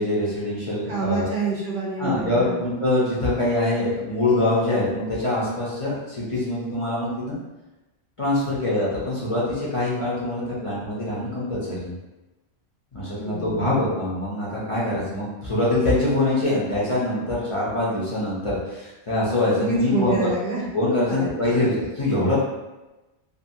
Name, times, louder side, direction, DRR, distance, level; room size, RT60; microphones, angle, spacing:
voice 1, 0.0-1.3 2.0-7.4 8.2-11.9 12.9-20.2 20.7-22.3, left 2 dB, 35° left, -8 dB, 0.6 m, -24 dB
voice 2, 0.9-2.6 13.2-13.8 19.6-20.6 21.1-21.7, right 3 dB, 60° right, -4 dB, 0.7 m, -27 dB
2.7 x 2.4 x 2.7 m, 1.1 s
omnidirectional pair, 1.1 m